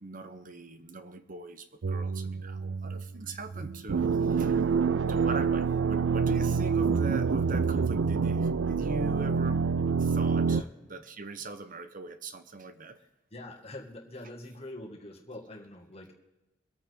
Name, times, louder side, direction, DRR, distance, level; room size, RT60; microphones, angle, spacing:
voice 1, 0.0-4.8 5.1-9.6 10.0-10.6 10.9-13.0, right 3 dB, 45° right, 10 dB, 1.1 m, -41 dB
sound 1, 1.8-10.6, right 5 dB, 80° right, 0.5 m, -27 dB
voice 2, 13.3-16.1, left 1 dB, 35° left, -1 dB, 2.1 m, -44 dB
24.0 x 8.8 x 3.8 m, 1.0 s
head